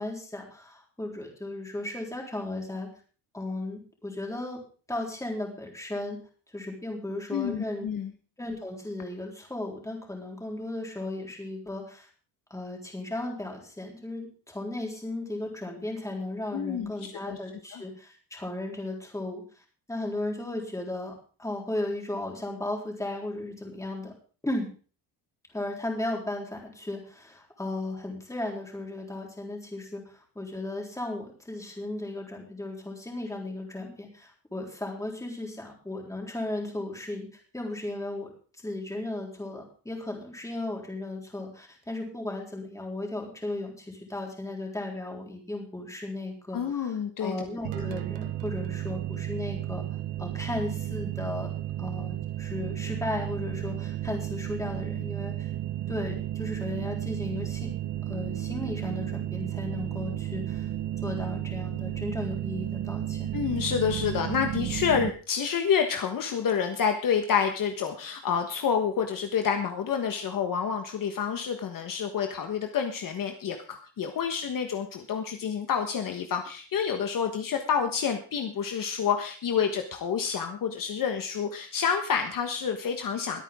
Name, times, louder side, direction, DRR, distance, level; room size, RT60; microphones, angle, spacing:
voice 1, 0.0-2.9 3.3-4.6 4.9-6.2 6.5-7.9 8.4-12.1 12.5-19.4 19.9-24.1 24.4-24.7 25.5-38.3 38.6-49.8 50.2-51.5 51.8-55.5 55.9-57.7 58.1-60.7 61.0-63.3, left 2 dB, 5° left, 0 dB, 3.7 m, -35 dB
voice 2, 7.3-8.1 16.5-16.9 17.3-17.4 17.7-17.8 46.5-47.3 63.3-83.4, left 7 dB, 50° left, 5 dB, 1.4 m, -28 dB
sound 1, 47.6-65.1, right 12 dB, 90° right, 1.0 m, -33 dB
21.5 x 9.1 x 3.7 m, 0.38 s
cardioid pair, 150°, 41 cm